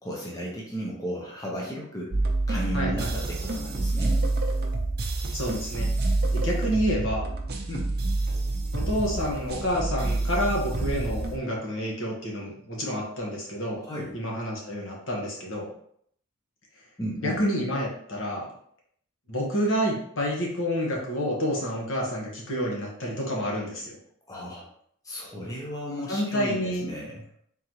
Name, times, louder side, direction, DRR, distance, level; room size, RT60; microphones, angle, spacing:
voice 1, 0.0-2.1 2.5-4.2 7.7-7.9 13.8-14.1 17.0-17.4 24.3-24.7 25.0-27.2, equal, 15° left, -3 dB, 0.8 m, -34 dB
sound 1, 2.1-11.4, right 2 dB, 50° right, 0.6 m, -27 dB
voice 2, 2.7-3.1 5.3-5.9 6.3-7.3 8.7-13.8 14.1-15.7 17.2-18.5 19.3-24.0 26.1-26.9, equal, 70° left, -2 dB, 1.3 m, -29 dB
3.9 x 3.5 x 3.0 m, 0.66 s
head